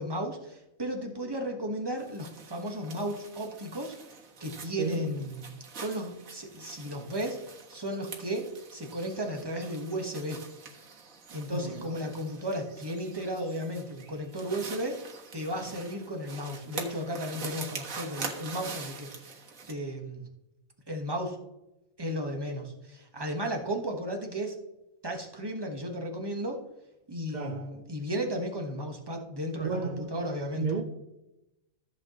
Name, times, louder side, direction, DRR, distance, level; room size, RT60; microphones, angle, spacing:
voice 1, 0.0-4.0 4.4-5.5 5.7-10.4 11.3-15.0 15.3-20.2 20.9-21.4 22.0-24.6 25.0-26.6 27.1-30.7, equal, 20° right, 1.4 m, -34 dB
sound 1, 2.0-19.7, right 4 dB, 80° right, 1.8 m, -44 dB
voice 2, 4.8-5.1 11.5-12.1 27.3-27.8 29.6-30.8, right 4 dB, 40° right, 0.8 m, -34 dB
14.5 x 7.5 x 3.0 m
omnidirectional pair, 1.4 m